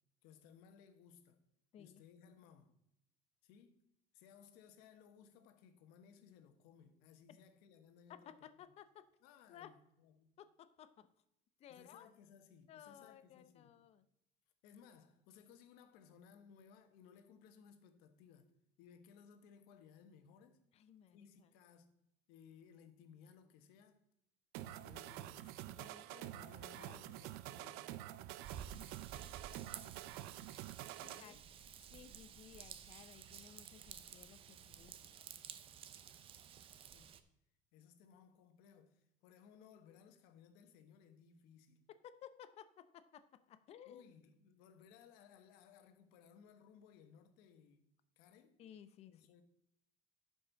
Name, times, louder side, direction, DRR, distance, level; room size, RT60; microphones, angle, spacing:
voice 1, 0.2-1.4 1.8-2.7 3.4-3.8 4.1-8.5 9.2-10.3 11.7-13.8 14.6-18.5 18.8-20.6 21.1-21.9 22.3-24.0 24.6-25.6 26.3-28.2 31.0-31.4 36.9-37.1 37.7-41.8 43.8-47.8 48.2-48.6 49.1-49.4, left 7 dB, 80° left, 1.2 m, -62 dB
voice 2, 8.1-9.1 9.5-9.7 10.4-11.1 11.6-12.1 12.7-14.0 20.7-21.5 25.7-27.5 31.0-31.4 31.8-35.2 41.9-44.0 48.6-49.3, left 10 dB, 40° left, 0.7 m, -58 dB
sound 1, 24.5-31.2, right 14 dB, 80° right, 0.5 m, -48 dB
Raindrop / Vehicle horn car horn honking / Trickle dribble, 28.4-37.2, right 8 dB, 35° right, 0.6 m, -53 dB
11.5 x 5.4 x 3.9 m
cardioid pair, 165°, 16 cm